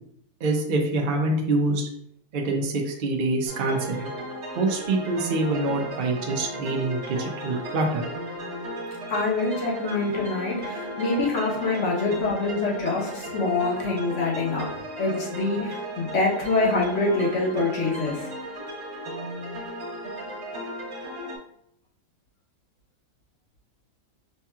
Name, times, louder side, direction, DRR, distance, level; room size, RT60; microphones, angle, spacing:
voice 1, 0.4-1.9 2.3-4.1 4.6-8.1, right 2 dB, 80° right, 1 dB, 0.4 m, -25 dB
sound 1, 3.5-21.4, right 1 dB, 50° right, 1.3 m, -35 dB
voice 2, 9.1-18.3, left 3 dB, 55° left, -2 dB, 1.2 m, -25 dB
5.3 x 2.8 x 2.3 m, 0.71 s
omnidirectional pair, 1.7 m